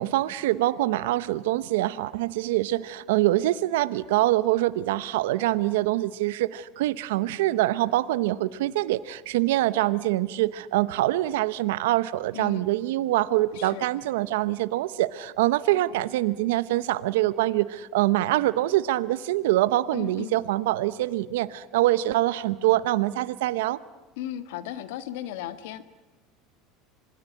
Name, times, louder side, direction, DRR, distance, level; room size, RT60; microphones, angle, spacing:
voice 1, 0.0-23.8, right 16 dB, 80° right, 15 dB, 0.8 m, -24 dB
voice 2, 12.3-12.7 13.5-13.8 19.9-20.3 24.2-25.9, left 12 dB, 75° left, 11 dB, 1.7 m, -36 dB
26.5 x 20.5 x 9.7 m, 1.2 s
hypercardioid pair, 90°, 0 cm